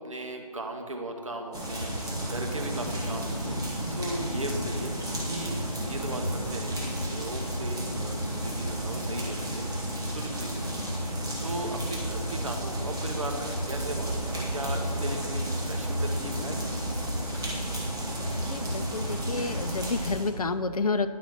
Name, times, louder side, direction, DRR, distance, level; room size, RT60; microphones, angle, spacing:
voice 1, 0.0-16.7, right 2 dB, 50° right, 3 dB, 0.9 m, -38 dB
sound 1, 1.5-20.3, right 1 dB, 5° right, 1.1 m, -32 dB
voice 2, 18.3-21.1, left 4 dB, 60° left, 11 dB, 0.5 m, -30 dB
11.5 x 4.1 x 5.9 m, 2.2 s
figure-of-eight pair, 175°, 21 cm